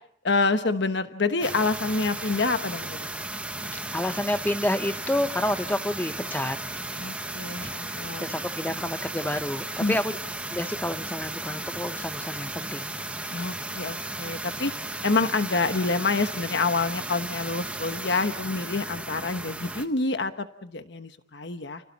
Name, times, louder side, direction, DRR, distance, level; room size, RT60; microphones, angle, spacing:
voice 1, 0.2-3.1 7.0-8.3 9.8-10.0 13.3-14.7 15.0-21.8, left 3 dB, 65° left, 9 dB, 1.2 m, -27 dB
sound 1, 1.4-19.8, right 2 dB, 5° right, 1.2 m, -35 dB
voice 2, 3.9-6.6 7.6-7.7 8.2-10.2 10.5-12.9, left 1 dB, 10° left, 10 dB, 0.9 m, -29 dB
30.0 x 29.5 x 4.2 m, 0.64 s
head